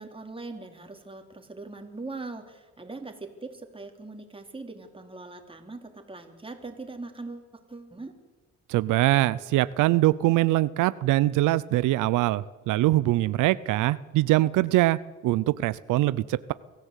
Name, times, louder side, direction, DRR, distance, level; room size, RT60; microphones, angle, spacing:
voice 1, 0.0-8.1, right 3 dB, 15° right, 5 dB, 3.4 m, -41 dB
voice 2, 8.7-16.5, right 16 dB, 90° right, 17 dB, 0.6 m, -23 dB
24.0 x 15.0 x 8.2 m, 1.2 s
cardioid pair, 90°, 30 cm